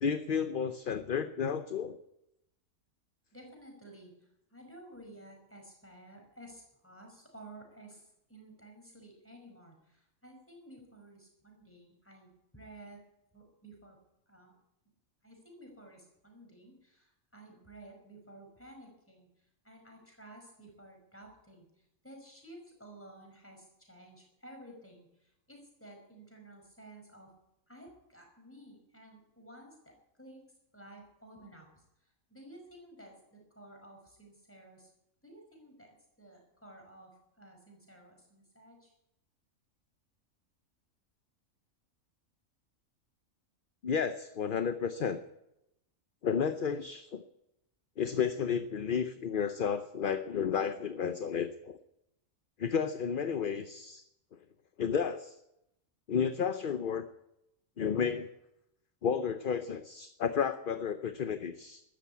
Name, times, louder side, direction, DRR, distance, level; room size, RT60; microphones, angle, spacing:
voice 1, 0.0-1.9 43.8-45.2 46.2-47.2 48.0-51.8 52.6-54.0 54.8-55.4 56.1-57.0 57.8-58.3 59.0-61.8, left 7 dB, 45° left, 9 dB, 0.8 m, -32 dB
voice 2, 3.3-13.0 13.3-14.0 14.3-14.6 15.2-27.3 27.7-30.5 30.7-34.9 35.2-38.9, right 1 dB, 10° left, 2 dB, 5.3 m, -54 dB
13.5 x 12.5 x 8.4 m, 0.83 s
omnidirectional pair, 1.4 m